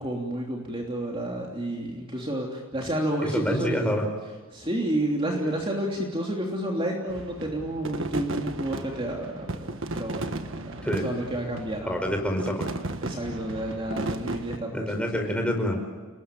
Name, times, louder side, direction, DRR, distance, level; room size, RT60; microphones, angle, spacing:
voice 1, 0.0-3.9 4.5-12.1 13.0-15.1, right 1 dB, 25° right, -1 dB, 3.1 m, -30 dB
voice 2, 3.2-4.0 10.8-11.1 11.8-12.7 14.7-15.8, equal, 5° left, 3 dB, 5.1 m, -27 dB
sound 1, 7.1-14.6, right 2 dB, 60° right, 1.6 m, -35 dB
30.0 x 21.0 x 9.2 m, 1.3 s
head